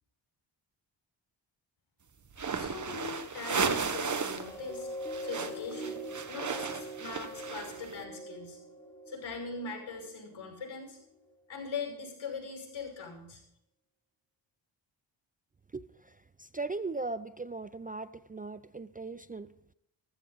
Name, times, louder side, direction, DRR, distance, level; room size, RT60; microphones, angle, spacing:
sound 1, 2.3-4.5 4.8-7.9, right 5 dB, 40° right, 1.3 m, -34 dB
voice 1, 2.5-4.9 5.2-8.6 9.1-11.0 11.5-13.4, left 4 dB, 70° left, 2 dB, 5.8 m, -41 dB
sound 2, 3.7-10.4 11.0-11.2, right 1 dB, 5° left, 4.2 m, -43 dB
voice 2, 15.7-19.5, right 3 dB, 20° right, 14 dB, 0.4 m, -39 dB
15.0 x 14.5 x 4.1 m, 0.77 s
cardioid pair, 70°, 48 cm